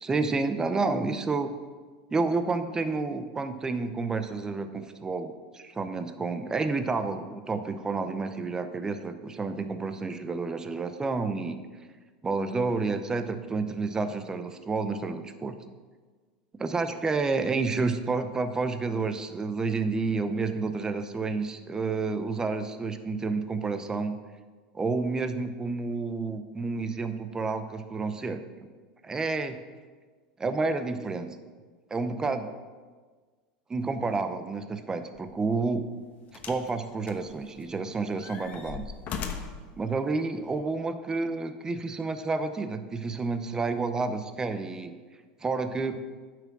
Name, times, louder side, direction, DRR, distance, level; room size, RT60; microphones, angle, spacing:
voice 1, 0.0-1.5 2.1-11.6 12.2-15.6 16.6-24.2 24.7-28.7 29.0-29.6 30.4-31.3 31.9-32.5 33.7-35.9 36.4-38.9 39.8-44.9 45.4-46.0, right 3 dB, 15° right, 9 dB, 0.6 m, -30 dB
sound 1, 35.2-35.3 36.3-36.7 37.1-37.8 38.2-39.7 40.6-40.7, left 6 dB, 40° left, 1.0 m, -38 dB
9.0 x 6.0 x 6.0 m, 1.4 s
supercardioid pair, 125°, 4 cm